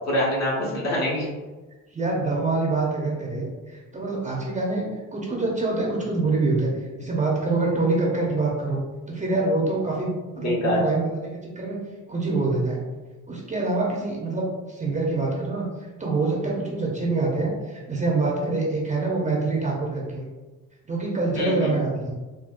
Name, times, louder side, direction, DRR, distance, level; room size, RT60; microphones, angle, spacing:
voice 1, 0.1-1.3 10.4-10.8 21.4-21.7, left 1 dB, 50° left, -5 dB, 1.3 m, -25 dB
voice 2, 1.9-4.9 5.1-8.8 9.1-11.8 12.1-12.8 13.3-15.7 16.0-20.2 20.9-22.1, right 3 dB, 20° right, -3 dB, 0.8 m, -25 dB
3.7 x 2.3 x 2.5 m, 1.2 s
cardioid pair, 90°, 34 cm